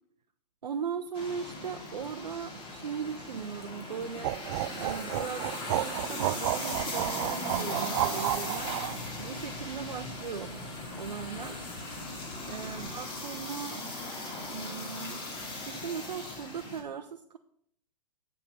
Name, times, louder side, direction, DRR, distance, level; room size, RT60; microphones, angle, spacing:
voice 1, 0.6-4.4 4.7-8.9 9.2-10.6 11.0-11.6 12.4-13.8 14.5-15.3 15.7-17.4, right 6 dB, 80° right, 6 dB, 0.7 m, -38 dB
sound 1, 1.1-16.8, left 2 dB, 25° left, 2.6 m, -39 dB
sound 2, 4.2-9.0, right 15 dB, 45° right, 0.4 m, -31 dB
sound 3, 8.6-12.9, left 2 dB, 75° left, 4.1 m, -47 dB
8.0 x 7.4 x 5.8 m, 0.69 s
hypercardioid pair, 115°, 21 cm